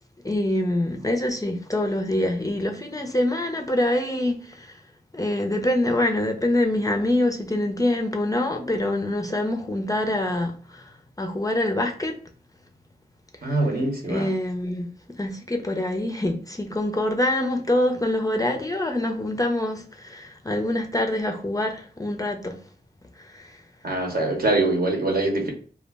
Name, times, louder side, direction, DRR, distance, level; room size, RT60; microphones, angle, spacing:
voice 1, 0.2-4.8 5.1-12.2 13.4-13.8 14.1-14.9 15.2-22.6 23.2-23.6, left 1 dB, 20° left, 0.4 m, -25 dB
voice 2, 13.4-14.3 23.8-25.5, right 2 dB, 60° right, 0.8 m, -23 dB
2.3 x 2.0 x 3.3 m
wide cardioid pair, 55°, 18 cm